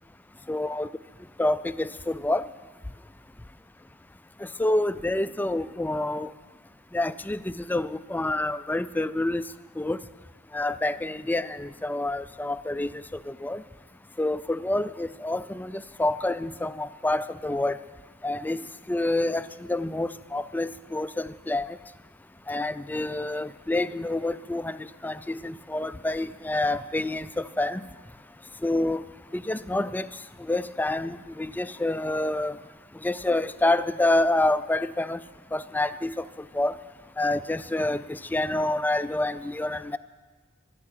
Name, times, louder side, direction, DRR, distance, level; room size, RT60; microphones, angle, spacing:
voice 1, 0.5-0.9 1.4-2.4 4.6-6.3 6.9-9.4 9.8-10.0 10.5-13.6 14.2-17.8 18.2-18.6 18.9-21.7 22.5-24.8 25.0-27.8 28.6-29.0 29.3-30.1 30.5-32.6 33.0-35.2 35.5-36.2 36.5-36.8 37.2-40.0, left 2 dB, 10° left, 13 dB, 0.4 m, -27 dB
13.0 x 12.0 x 9.0 m, 1.4 s
head